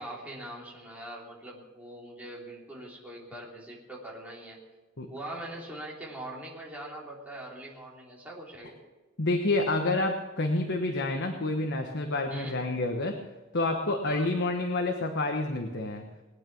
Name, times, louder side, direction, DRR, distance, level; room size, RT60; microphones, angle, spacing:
voice 1, 0.0-4.6 5.1-8.8 12.3-12.7 14.0-14.3, right 1 dB, 5° right, -4 dB, 3.4 m, -42 dB
voice 2, 9.2-13.2 13.5-16.0, left 2 dB, 55° left, 3 dB, 1.3 m, -28 dB
20.5 x 9.3 x 6.1 m, 1.2 s
head